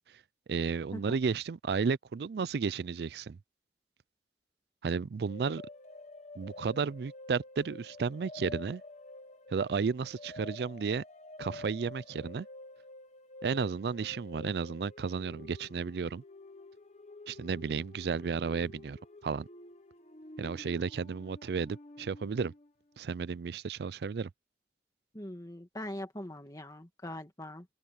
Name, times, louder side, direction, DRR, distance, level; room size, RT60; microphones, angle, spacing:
voice 1, 0.5-3.4 4.8-5.6 6.4-8.8 9.5-11.0 11.4-12.5 13.4-16.2 17.3-19.5 20.4-22.5 23.0-24.3, right 5 dB, 60° right, 0.4 m, -33 dB
sound 1, 5.3-22.7, left 2 dB, 40° left, 1.2 m, -49 dB
voice 2, 25.1-27.6, left 1 dB, 20° left, 1.9 m, -42 dB
open air
head